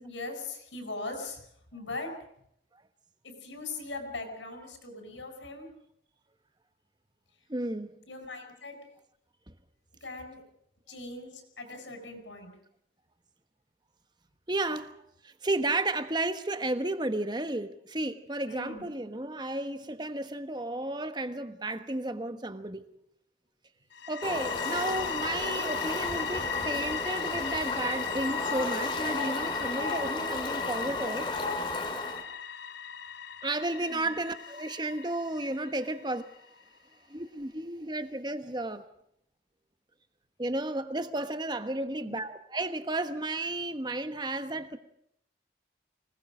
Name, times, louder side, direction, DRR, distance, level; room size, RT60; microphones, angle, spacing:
voice 1, 0.0-1.4 1.7-2.1 3.2-5.7 8.1-8.8 10.0-10.4 10.9-12.5 18.5-18.8 33.8-34.1 42.0-42.2, left 2 dB, 85° left, 6.3 m, -40 dB
voice 2, 7.5-8.0 14.5-14.9 15.2-22.8 24.1-31.3 33.4-36.2 37.1-38.8 40.4-44.8, right 2 dB, 25° right, 1.2 m, -33 dB
sound 1, 23.9-36.6, left 8 dB, 65° left, 0.9 m, -38 dB
Fowl, 24.2-32.2, left 2 dB, 25° left, 2.7 m, -33 dB
25.0 x 19.5 x 6.3 m
head